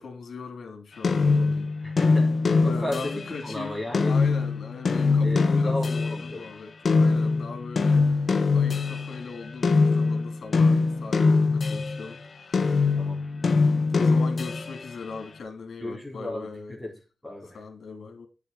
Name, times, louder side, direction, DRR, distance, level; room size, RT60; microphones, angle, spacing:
voice 1, 0.0-2.0 2.6-13.0 13.3-16.8 17.5-18.3, left 4 dB, 85° left, 2.6 m, -40 dB
sound 1, 1.0-6.3 6.8-12.1 12.5-14.9, left 4 dB, 55° left, 1.1 m, -23 dB
voice 2, 1.8-2.3 2.6-4.1 5.2-6.5 12.9-13.2 15.8-17.6, left 1 dB, 5° left, 4.9 m, -34 dB
9.8 x 7.0 x 4.8 m
wide cardioid pair, 125°, 0 cm